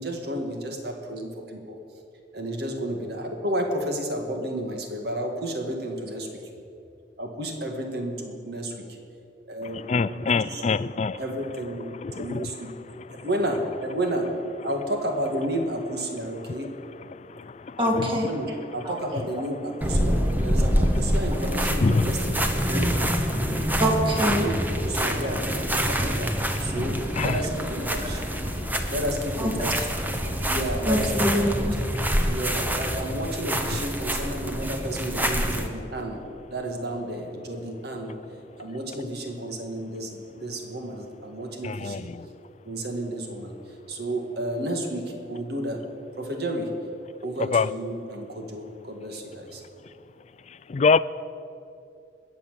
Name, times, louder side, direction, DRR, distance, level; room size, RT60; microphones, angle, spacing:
voice 1, 0.0-1.8 2.3-6.3 7.2-8.7 9.5-9.8 10.1-10.7 11.1-11.9 12.2-12.7 13.1-14.4 14.6-16.7 18.3-22.9 24.3-24.5 24.8-26.3 26.6-28.2 28.9-29.7 30.5-31.5 32.3-36.2 36.5-38.2 38.6-42.1 42.6-43.5 43.9-45.8 46.2-46.7 47.2-49.6, right 1 dB, 60° right, 3 dB, 2.0 m, -31 dB
voice 2, 9.9-11.2 21.8-22.0 27.2-27.3 41.7-42.0 47.5-47.6 50.7-51.0, left 4 dB, 35° left, 17 dB, 0.3 m, -22 dB
voice 3, 17.8-18.3 22.7-22.8 23.8-24.5 29.4-29.5 30.9-31.8 35.4-35.5, equal, 25° right, 1 dB, 2.1 m, -24 dB
sound 1, 19.8-35.7, equal, 10° right, 1.0 m, -26 dB
21.0 x 7.3 x 7.6 m, 2.6 s
head